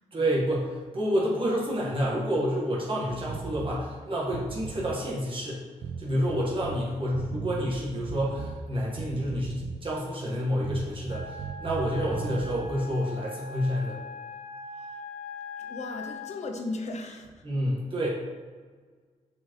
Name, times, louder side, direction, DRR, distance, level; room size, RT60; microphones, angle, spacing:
voice 1, 0.1-5.6 6.0-14.0 17.4-18.1, equal, 40° right, -5 dB, 1.4 m, -29 dB
sound 1, 3.1-3.8 4.3-5.0 5.8-6.8 7.1-8.6 9.0-9.9 10.6-12.7, right 5 dB, 65° right, 0.5 m, -37 dB
Wind instrument woodwind instrument, 11.1-16.4, left 3 dB, 90° left, 0.7 m, -41 dB
voice 2, 15.6-17.4, left 2 dB, 60° left, 4 dB, 0.8 m, -37 dB
7.0 x 4.4 x 3.0 m, 1.5 s
cardioid pair, 100°, 13 cm